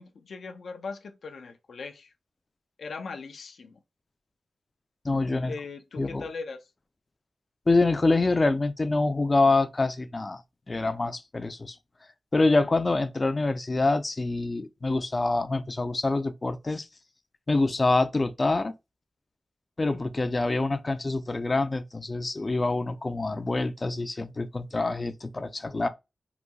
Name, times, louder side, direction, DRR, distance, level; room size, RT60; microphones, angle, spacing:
voice 1, 0.0-2.1 2.8-3.8 5.4-6.7, left 4 dB, 75° left, 0.5 m, -39 dB
voice 2, 5.0-5.5 6.0-6.2 7.7-10.4 10.7-11.8 12.3-16.9 17.5-18.7 19.8-25.9, left 3 dB, 30° left, 0.4 m, -26 dB
4.0 x 2.7 x 2.3 m
wide cardioid pair, 145°, 0 cm